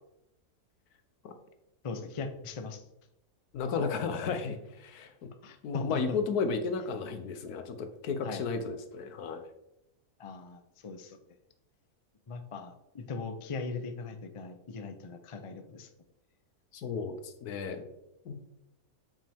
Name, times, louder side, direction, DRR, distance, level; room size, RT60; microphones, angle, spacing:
voice 1, 1.8-2.8 5.4-6.2 8.2-8.4 10.2-11.2 12.3-15.9, left 4 dB, 55° left, 7 dB, 0.3 m, -39 dB
voice 2, 3.5-5.3 5.6-9.4 16.7-17.8 18.2-18.3, left 5 dB, 80° left, 8 dB, 1.3 m, -33 dB
7.5 x 5.4 x 3.6 m, 0.84 s
omnidirectional pair, 1.6 m